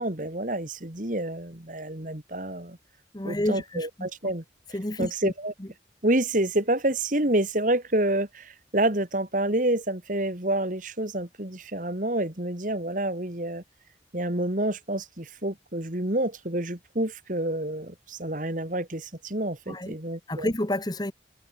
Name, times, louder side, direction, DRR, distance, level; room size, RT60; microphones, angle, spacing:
voice 1, 0.0-2.8 3.2-4.4 5.0-5.5 6.0-13.6 14.1-20.5, right 1 dB, 45° right, 2.6 m, -28 dB
voice 2, 3.1-4.1 4.7-5.3 5.6-5.7 19.7-20.0 20.3-21.1, left 1 dB, 25° left, 1.4 m, -30 dB
head